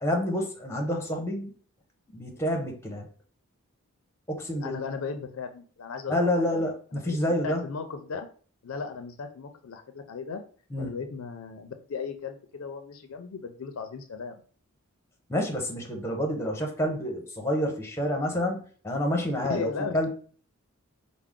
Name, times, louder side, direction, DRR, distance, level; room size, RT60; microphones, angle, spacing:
voice 1, 0.0-1.5 2.1-3.0 4.3-4.8 6.1-7.6 10.7-10.9 15.3-18.6 18.8-19.7 19.9-20.1, left 1 dB, 10° left, 2 dB, 0.7 m, -28 dB
voice 2, 4.6-6.6 6.9-7.2 7.4-8.3 8.6-10.4 10.8-14.4 19.5-19.9, left 5 dB, 65° left, 7 dB, 0.4 m, -36 dB
4.7 x 2.0 x 3.6 m, 0.42 s
head